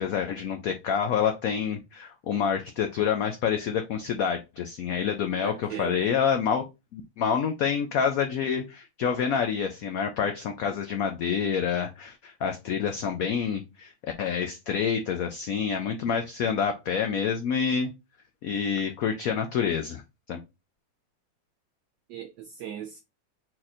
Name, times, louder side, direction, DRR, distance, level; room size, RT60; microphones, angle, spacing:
voice 1, 0.0-6.6 6.9-17.9 18.4-20.0 20.3-20.4, left 7 dB, 90° left, 0.7 m, -27 dB
voice 2, 5.4-6.1 22.1-23.0, right 9 dB, 75° right, 1.1 m, -38 dB
4.3 x 2.5 x 4.1 m
omnidirectional pair, 2.1 m